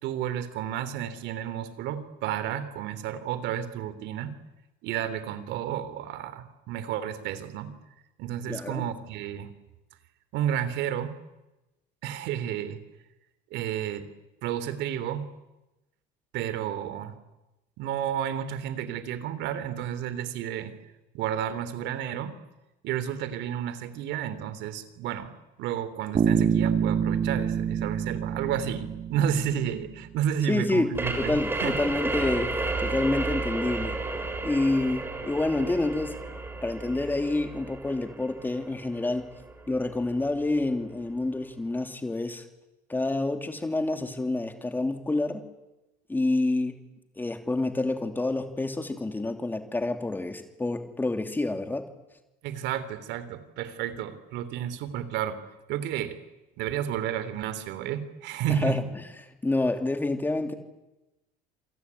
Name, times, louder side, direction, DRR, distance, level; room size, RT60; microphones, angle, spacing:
voice 1, 0.0-4.3 4.8-7.7 8.2-9.5 10.3-11.2 12.0-12.8 13.5-14.1 14.4-15.3 16.3-17.2 17.8-20.7 21.1-22.4 22.8-25.3 25.6-31.7 52.4-55.4 55.7-56.2 56.6-58.9, right 10 dB, 65° right, 13 dB, 3.2 m, -31 dB
voice 2, 8.5-8.8 30.5-30.9 31.2-32.5 32.8-34.0 34.4-36.2 36.6-39.3 39.7-42.4 42.9-45.4 46.1-46.8 47.2-51.9 58.5-58.8 59.4-60.5, left 2 dB, 10° left, 7 dB, 2.8 m, -28 dB
Bass guitar, 26.1-29.9, right 7 dB, 35° right, 2.0 m, -26 dB
sound 1, 30.9-40.3, right 2 dB, 10° right, 4.1 m, -33 dB
28.0 x 21.5 x 9.7 m, 0.99 s
cardioid pair, 140°, 19 cm